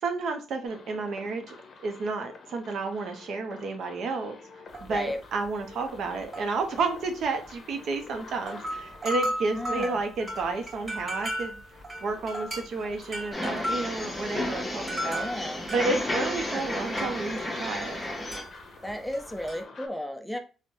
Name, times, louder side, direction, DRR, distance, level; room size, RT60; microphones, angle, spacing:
voice 1, 0.0-1.6 1.8-4.3 4.8-11.6 12.0-15.2 15.7-18.0, right 3 dB, 70° right, 5 dB, 0.6 m, -31 dB
sound 1, 0.6-19.9, left 4 dB, 50° left, 0.7 m, -50 dB
sound 2, 4.7-5.1 5.5-5.6 6.2-7.6 8.1-8.2 8.4-18.0 18.3-19.6, equal, 25° right, 1.5 m, -36 dB
voice 2, 9.5-10.0 15.1-15.7 16.4-16.7 18.8-20.4, left 1 dB, ahead, 6 dB, 0.4 m, -34 dB
sound 3, 13.3-18.4, left 1 dB, 15° left, 0.8 m, -32 dB
3.7 x 2.1 x 2.6 m, 0.35 s
cardioid pair, 90°, 0 cm